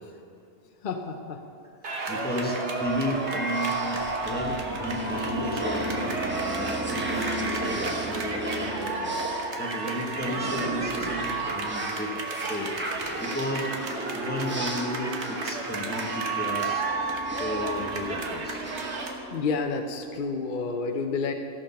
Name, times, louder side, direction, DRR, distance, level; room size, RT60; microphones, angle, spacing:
voice 1, 0.8-1.4 19.3-21.3, left 4 dB, 55° left, 5 dB, 0.8 m, -29 dB
sound 1, 1.8-19.1, right 3 dB, 85° right, 1.5 m, -34 dB
voice 2, 2.1-6.2 6.5-9.2 9.6-12.7 13.2-13.7 14.1-16.9 17.4-19.0, equal, 10° left, -2 dB, 1.3 m, -33 dB
sound 2, 2.3-19.9, right 2 dB, 10° right, 1.0 m, -33 dB
15.5 x 6.6 x 5.6 m, 2.6 s
omnidirectional pair, 1.1 m